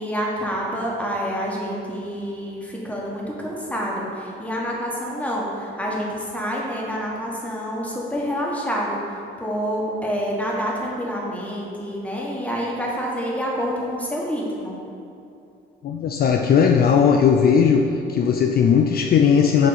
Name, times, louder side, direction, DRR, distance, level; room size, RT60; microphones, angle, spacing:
voice 1, 0.0-14.8, equal, 5° left, -4 dB, 1.4 m, -27 dB
voice 2, 15.8-17.8 18.1-19.7, left 7 dB, 50° left, 3 dB, 0.4 m, -17 dB
6.9 x 2.9 x 5.7 m, 2.7 s
cardioid pair, 90°, 20 cm